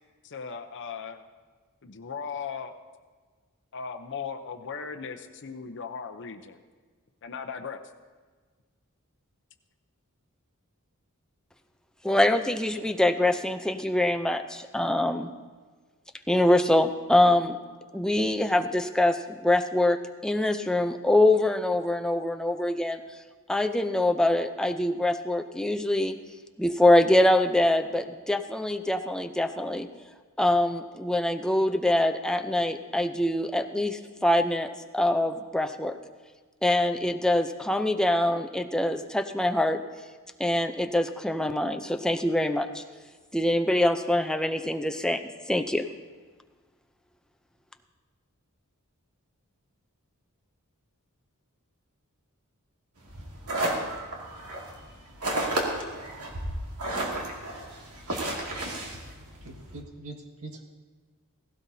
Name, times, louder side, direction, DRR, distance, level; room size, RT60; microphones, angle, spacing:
voice 1, 0.2-1.3 1.8-2.8 3.7-6.6 7.2-7.8, left 6 dB, 55° left, 6 dB, 0.7 m, -37 dB
voice 2, 12.0-15.3 16.3-17.6 17.9-23.0 23.5-26.2 26.6-29.9 30.4-36.0 36.6-39.8 40.4-42.8 43.3-45.2 45.5-45.9, left 1 dB, 5° left, 6 dB, 0.5 m, -24 dB
sound 1, 53.0-59.8, right 1 dB, 90° right, 2.3 m, -32 dB
voice 3, 59.4-60.7, right 2 dB, 70° right, 2 dB, 1.8 m, -43 dB
17.0 x 16.5 x 2.8 m, 1.5 s
head